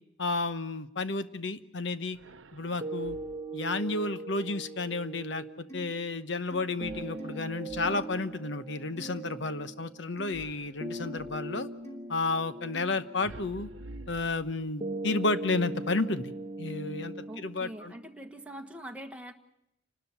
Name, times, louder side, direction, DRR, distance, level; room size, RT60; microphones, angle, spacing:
voice 1, 0.2-2.2 2.5-3.2 3.5-11.7 12.1-13.7 14.1-16.3 16.6-17.9, left 3 dB, 65° left, 12 dB, 1.0 m, -32 dB
sound 1, 2.1-3.6 6.8-8.4 10.3-11.5 13.2-14.9, right 2 dB, 80° right, 0.8 m, -49 dB
sound 2, 2.8-18.8, right 2 dB, 25° right, 1.0 m, -41 dB
sound 3, 5.7-5.9 6.5-6.6 7.2-7.3 7.8-8.1 9.0-9.2 10.2-10.3 11.0-11.2 11.8-12.0 12.7-12.9, right 1 dB, 15° left, 2.9 m, -44 dB
voice 2, 17.3-19.3, right 1 dB, 5° right, 3 dB, 1.4 m, -43 dB
29.0 x 12.5 x 9.5 m, 0.80 s
head